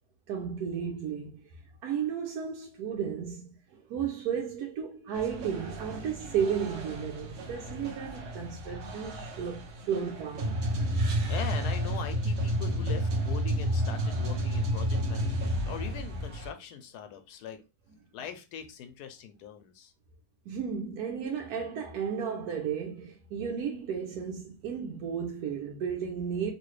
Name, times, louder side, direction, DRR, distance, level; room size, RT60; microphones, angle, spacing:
voice 1, 0.3-10.6 20.5-26.5, right 7 dB, 85° right, 1.1 m, -34 dB
sound 1, 5.1-16.5, equal, 55° right, 0.9 m, -31 dB
voice 2, 11.3-17.6 18.1-19.9, left 8 dB, 85° left, 1.2 m, -41 dB
3.1 x 2.7 x 3.0 m
omnidirectional pair, 1.6 m